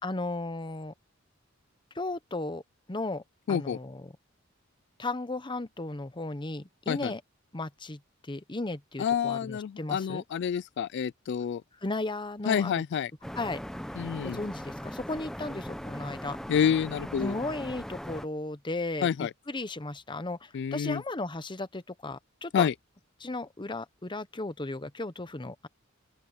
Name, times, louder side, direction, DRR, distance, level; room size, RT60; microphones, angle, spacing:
voice 1, 0.0-0.9 1.9-2.6 2.9-3.2 3.5-4.1 5.0-7.2 7.5-10.2 11.8-12.8 13.3-13.6 14.2-16.4 17.2-22.7 23.2-25.7, left 2 dB, 25° left, 1.0 m, -35 dB
voice 2, 3.5-3.8 6.9-7.1 9.0-11.6 12.5-13.1 14.0-14.4 16.5-17.3 19.0-19.3 20.5-21.0 22.5-22.7, left 8 dB, 60° left, 0.3 m, -28 dB
sound 1, 13.2-18.3, equal, ahead, 0.7 m, -39 dB
open air
head